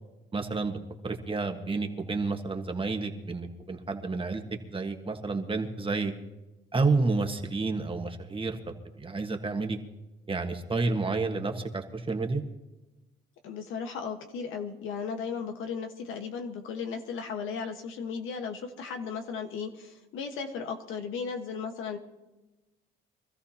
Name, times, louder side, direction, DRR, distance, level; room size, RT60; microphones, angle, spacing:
voice 1, 0.3-0.8 1.0-4.4 4.7-6.1 6.7-9.8 10.3-12.4, right 3 dB, 25° right, 5 dB, 1.5 m, -30 dB
voice 2, 13.4-22.0, left 6 dB, 90° left, 5 dB, 1.5 m, -36 dB
24.5 x 13.5 x 2.9 m, 1.1 s
cardioid pair, 90°, 20 cm